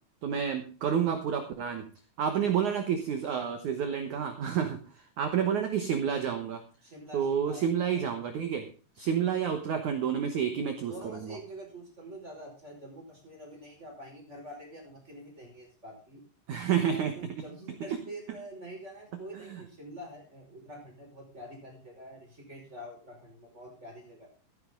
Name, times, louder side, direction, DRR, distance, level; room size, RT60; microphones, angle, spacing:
voice 1, 0.2-1.9 2.2-4.8 5.2-6.6 7.1-8.7 9.0-11.4 16.5-17.1 19.5-19.6, right 8 dB, 70° right, 7 dB, 1.8 m, -29 dB
voice 2, 6.8-8.0 10.9-16.2 16.9-24.3, right 1 dB, 15° right, 0 dB, 5.1 m, -46 dB
15.5 x 10.5 x 3.7 m, 0.36 s
omnidirectional pair, 5.3 m